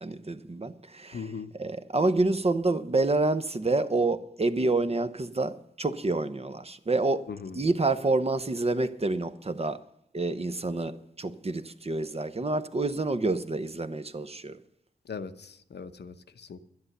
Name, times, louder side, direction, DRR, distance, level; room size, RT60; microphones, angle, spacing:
voice 1, 0.0-1.3 1.5-7.2 7.5-9.8 10.1-14.6, right 2 dB, 35° right, 0.9 m, -28 dB
voice 2, 1.1-1.5 7.3-7.6 15.1-16.6, left 5 dB, 85° left, 0.9 m, -39 dB
11.5 x 10.5 x 6.6 m
wide cardioid pair, 85°, 17 cm